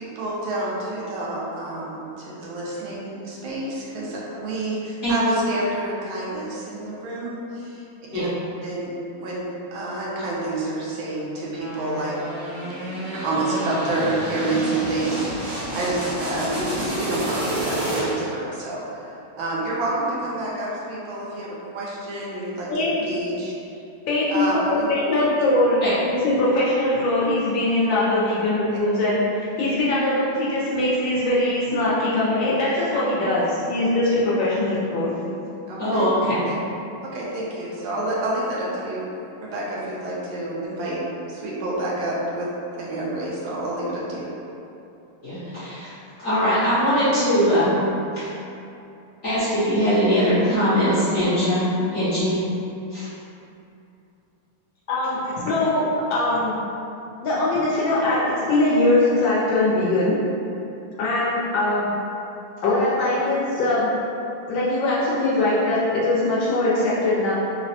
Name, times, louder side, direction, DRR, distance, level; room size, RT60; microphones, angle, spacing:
voice 1, 0.0-7.8 8.1-8.3 8.6-8.9 9.2-12.1 12.6-23.5 24.3-24.9 25.2-25.3 28.3-28.4 35.7-36.1 36.4-36.5 37.0-39.0 39.4-41.0 41.3-42.5 42.8-44.2, right 2 dB, 75° right, -6 dB, 1.4 m, -28 dB
sound 1, 11.6-18.4, right 1 dB, 50° right, 0.9 m, -29 dB
voice 2, 24.1-24.5 24.9-35.2 54.9-56.6 57.2-60.2 61.0-61.9 62.6-63.9 64.5-67.3, left 2 dB, 75° left, -7 dB, 1.2 m, -21 dB
voice 3, 35.8-36.4 45.2-45.9 46.2-47.8 48.1-48.3 49.2-52.4 52.9-53.1, equal, 55° left, -14 dB, 1.0 m, -21 dB
3.9 x 2.1 x 2.7 m, 2.8 s
omnidirectional pair, 2.3 m